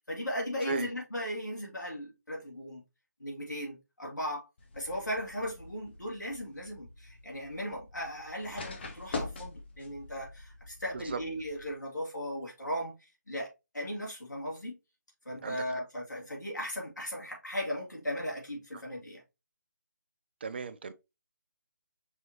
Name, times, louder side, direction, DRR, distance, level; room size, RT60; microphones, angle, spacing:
voice 1, 0.1-2.8 3.2-4.5 4.8-12.9 13.3-13.5 13.7-14.8 15.3-19.2, equal, 75° left, 2.2 m, -37 dB
sound 1, 4.6-11.7, left 3 dB, 35° left, 0.8 m, -44 dB
voice 2, 15.4-15.8 20.4-20.9, right 5 dB, 35° right, 0.4 m, -36 dB
5.5 x 3.0 x 2.8 m
figure-of-eight pair, 150°, 10 cm